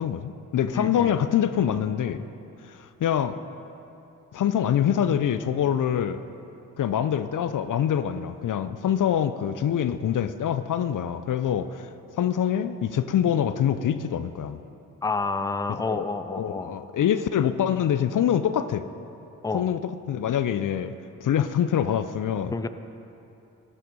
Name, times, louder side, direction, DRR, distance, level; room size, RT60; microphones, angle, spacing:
voice 1, 0.0-2.3 2.7-3.4 4.3-6.2 6.8-11.9 12.2-14.6 15.8-16.1 16.3-18.9 19.5-19.8 20.1-20.9 21.2-22.6, left 9 dB, 50° left, 11 dB, 0.7 m, -25 dB
voice 2, 0.7-1.2 15.0-16.8 19.4-19.7 22.5-22.7, left 3 dB, 10° left, 10 dB, 0.7 m, -29 dB
16.5 x 10.0 x 5.3 m, 2.9 s
hypercardioid pair, 45°, 41 cm